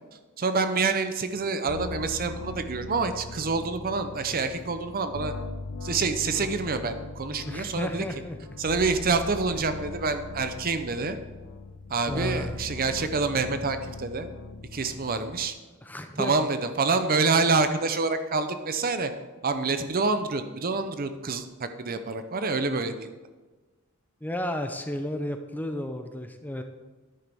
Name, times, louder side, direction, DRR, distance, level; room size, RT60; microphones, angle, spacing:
voice 1, 0.4-5.3 5.8-8.1 8.6-11.2 11.9-14.3 14.7-15.5 16.2-19.1 19.4-23.1, right 4 dB, 40° right, 9 dB, 0.7 m, -27 dB
sound 1, 1.6-15.5, left 3 dB, 70° left, 0.6 m, -40 dB
voice 2, 7.4-8.4 12.1-12.6 15.8-16.3 24.2-26.6, left 1 dB, 10° left, 6 dB, 0.5 m, -32 dB
10.0 x 9.9 x 3.5 m, 1.3 s
head